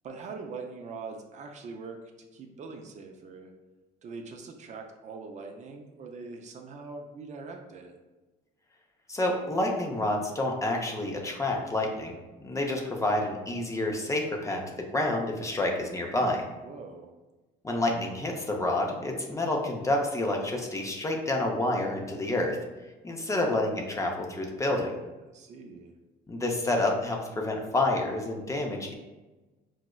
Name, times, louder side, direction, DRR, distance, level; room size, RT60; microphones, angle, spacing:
voice 1, 0.0-2.0 2.3-3.5 4.0-8.0 16.6-17.1 25.3-26.0, right 4 dB, 45° right, 3 dB, 0.4 m, -42 dB
voice 2, 9.1-12.2 12.4-14.6 14.9-16.4 17.6-22.6 23.0-24.9 26.3-28.9, left 2 dB, 20° left, 1 dB, 0.5 m, -28 dB
4.8 x 2.0 x 2.2 m, 1.2 s
cardioid pair, 110°, 17 cm